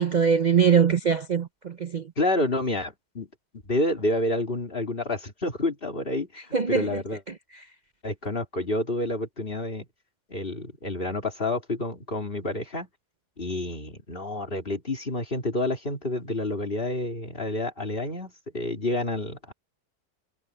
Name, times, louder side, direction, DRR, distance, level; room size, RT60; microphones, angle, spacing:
voice 1, 0.0-2.0 6.5-6.9, right 7 dB, 60° right, 0.4 m, -22 dB
voice 2, 2.2-3.3 3.6-7.2 8.0-9.9 10.3-12.9 13.4-19.5, left 2 dB, 35° left, 3.6 m, -29 dB
omnidirectional pair, 1.7 m